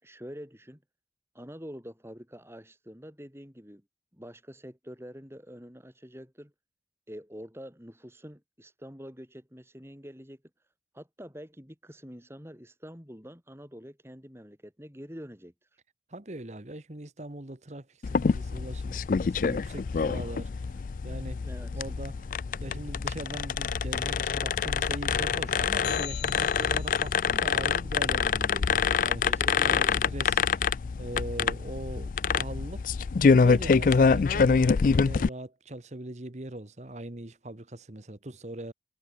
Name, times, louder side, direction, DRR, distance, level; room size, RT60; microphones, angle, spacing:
voice 1, 0.0-0.8 1.3-3.8 4.1-6.5 7.1-15.8 21.4-21.8 29.2-30.1, equal, 15° right, 6.9 m, -46 dB
voice 2, 16.1-21.4 21.7-22.3 22.6-38.7, right 1 dB, 40° right, 1.3 m, -41 dB
sound 1, 18.0-35.3, left 5 dB, 50° left, 0.4 m, -26 dB
sound 2, 25.8-27.2, left 12 dB, 70° left, 0.9 m, -41 dB
head